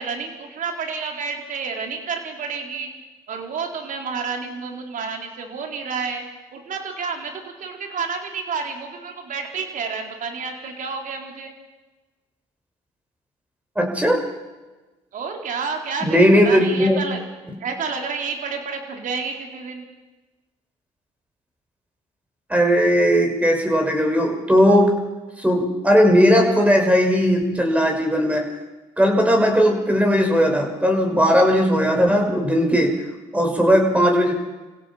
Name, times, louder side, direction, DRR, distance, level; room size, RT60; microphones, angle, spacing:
voice 1, 0.0-2.9 3.3-6.3 6.5-11.5 15.1-17.2 17.6-19.8, right 5 dB, 55° right, 3 dB, 4.2 m, -30 dB
voice 2, 13.8-14.2 16.0-17.0 22.5-24.9 25.4-28.4 29.0-32.9 33.3-34.3, equal, 10° right, 2 dB, 6.2 m, -17 dB
27.5 x 16.5 x 5.9 m, 1.2 s
supercardioid pair, 70°, 16 cm